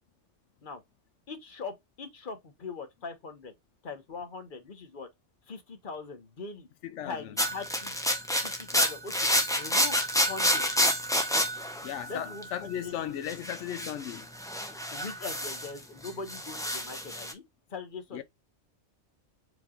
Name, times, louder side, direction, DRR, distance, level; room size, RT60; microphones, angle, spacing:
voice 1, 1.3-3.5 3.8-5.1 5.5-6.7 7.0-8.0 8.4-9.3 9.6-10.7 12.1-12.9 14.7-17.4 17.7-18.2, left 4 dB, 45° left, 1.3 m, -41 dB
voice 2, 6.8-7.4 11.8-14.3 18.1-18.2, left 11 dB, 90° left, 0.9 m, -36 dB
sound 1, 7.4-12.6 13.3-15.8 16.0-17.3, equal, 5° left, 0.7 m, -29 dB
5.0 x 3.4 x 2.4 m
omnidirectional pair, 1.2 m